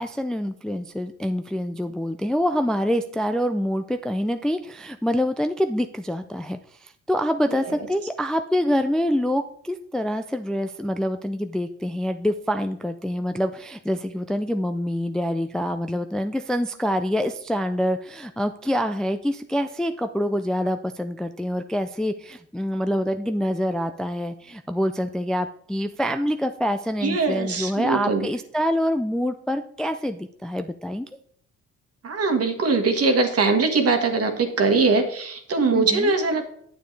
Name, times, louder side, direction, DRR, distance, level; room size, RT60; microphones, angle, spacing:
voice 1, 0.0-31.1 35.7-36.1, equal, ahead, 8 dB, 0.3 m, -26 dB
voice 2, 27.0-28.3 32.0-36.5, right 4 dB, 50° right, 6 dB, 1.4 m, -22 dB
9.0 x 7.2 x 3.2 m, 0.66 s
cardioid pair, 90°, 30 cm